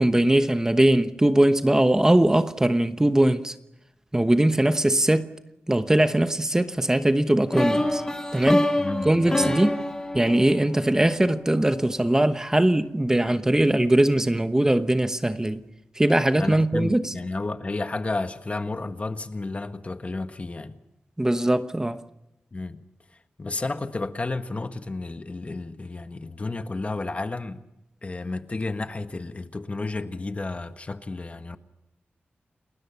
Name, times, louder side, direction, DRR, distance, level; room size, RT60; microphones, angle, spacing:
voice 1, 0.0-3.5 4.1-5.3 5.7-8.0 8.3-8.7 9.0-9.8 10.1-15.6 16.0-17.1 21.2-22.0, right 1 dB, 15° right, 1.1 m, -21 dB
sound 1, 7.5-11.5, left 1 dB, 15° left, 2.6 m, -26 dB
voice 2, 8.8-9.6 16.4-20.8 22.5-22.8 23.4-27.6 28.0-31.6, left 3 dB, 35° left, 1.5 m, -32 dB
30.0 x 20.5 x 5.8 m
wide cardioid pair, 125°, 4 cm